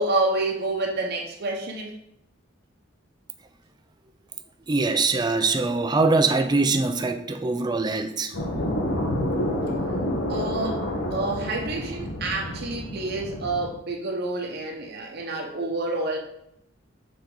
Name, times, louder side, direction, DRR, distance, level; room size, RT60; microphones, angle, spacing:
voice 1, 0.0-2.0 10.3-10.9 11.1-16.2, right 2 dB, 55° right, 1 dB, 0.9 m, -28 dB
voice 2, 4.7-8.3, right 3 dB, 20° right, 7 dB, 0.4 m, -23 dB
sound 1, 8.3-13.7, left 1 dB, 75° left, 1.1 m, -29 dB
6.8 x 3.9 x 3.8 m, 0.77 s
head